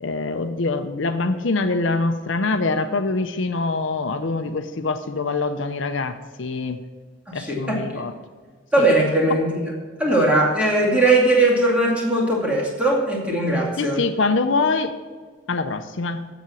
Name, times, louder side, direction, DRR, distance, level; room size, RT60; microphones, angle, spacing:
voice 1, 0.0-6.8 7.3-8.1 8.8-8.9 10.2-10.3 13.8-14.9 15.5-16.2, left 3 dB, 70° left, 8 dB, 0.6 m, -24 dB
voice 2, 7.3-8.0 8.7-9.7 10.0-14.0, right 2 dB, 5° right, -4 dB, 2.4 m, -19 dB
7.9 x 7.7 x 7.0 m, 1.5 s
head